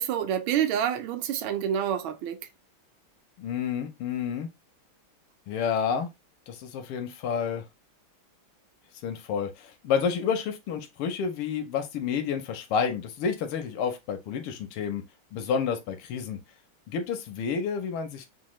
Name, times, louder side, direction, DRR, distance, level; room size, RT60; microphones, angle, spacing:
voice 1, 0.0-2.4, right 9 dB, 75° right, 1.4 m, -27 dB
voice 2, 3.4-4.5 5.5-6.1 6.5-7.6 9.0-15.0 15.3-16.4 16.9-18.3, left 6 dB, 85° left, 1.6 m, -30 dB
5.2 x 2.2 x 3.0 m
omnidirectional pair, 2.4 m